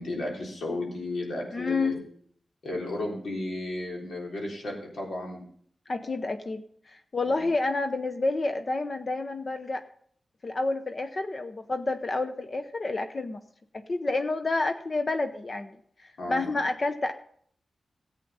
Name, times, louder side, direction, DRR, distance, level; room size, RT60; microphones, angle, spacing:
voice 1, 0.0-1.9 2.6-5.4 7.2-7.5 16.2-16.5, left 2 dB, 85° left, -2 dB, 3.7 m, -34 dB
voice 2, 1.5-1.9 5.9-9.8 10.4-13.4 13.7-17.1, left 3 dB, 40° left, 8 dB, 0.7 m, -29 dB
14.5 x 8.2 x 5.6 m, 0.62 s
wide cardioid pair, 115°, 0 cm